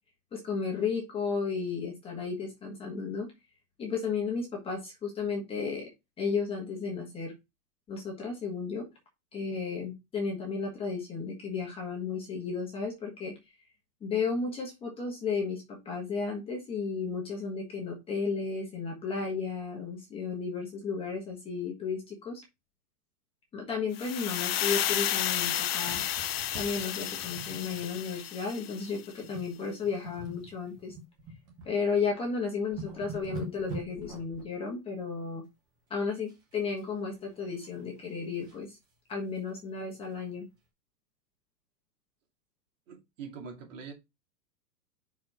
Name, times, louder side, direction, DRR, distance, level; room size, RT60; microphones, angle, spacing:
voice 1, 0.3-3.3 3.8-5.9 6.2-7.3 7.9-8.9 9.3-13.3 14.0-22.4 23.5-26.0 26.5-30.9 31.6-35.4 35.9-38.8 39.1-40.4, left 5 dB, 10° left, 1.4 m, -33 dB
sound 1, 24.0-29.0, left 12 dB, 40° left, 0.5 m, -32 dB
sound 2, 25.8-28.2 28.5-28.7 29.2-29.5 29.8-31.7 32.2-32.3 32.6-34.5 36.3-36.8 37.2-38.6 39.1-39.2 39.5-39.6 40.0-40.1, right 2 dB, 10° right, 0.5 m, -44 dB
voice 2, 42.9-43.9, right 6 dB, 55° right, 2.4 m, -43 dB
6.0 x 4.4 x 4.2 m
supercardioid pair, 165°, 46 cm